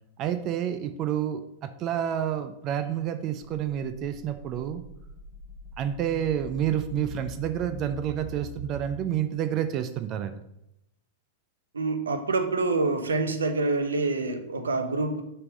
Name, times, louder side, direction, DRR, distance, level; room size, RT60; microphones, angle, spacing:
voice 1, 0.2-4.8 5.8-10.3, right 10 dB, 40° right, 10 dB, 0.5 m, -29 dB
sound 1, 4.2-9.0, right 2 dB, 15° right, 1.2 m, -43 dB
voice 2, 11.7-15.2, right 3 dB, 80° right, 7 dB, 0.9 m, -26 dB
6.7 x 3.7 x 6.2 m, 0.85 s
figure-of-eight pair, 100°, 0 cm